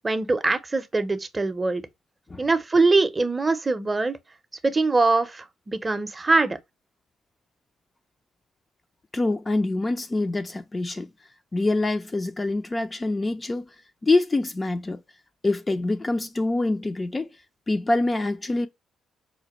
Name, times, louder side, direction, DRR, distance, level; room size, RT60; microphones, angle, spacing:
voice 1, 0.0-1.8 2.4-4.2 4.6-6.6, right 3 dB, 25° right, 0.6 m, -22 dB
voice 2, 9.1-11.1 11.5-13.7 14.0-15.0 15.4-17.3 17.7-18.7, left 2 dB, 25° left, 0.4 m, -25 dB
5.0 x 2.1 x 2.9 m
cardioid pair, 90°, 0 cm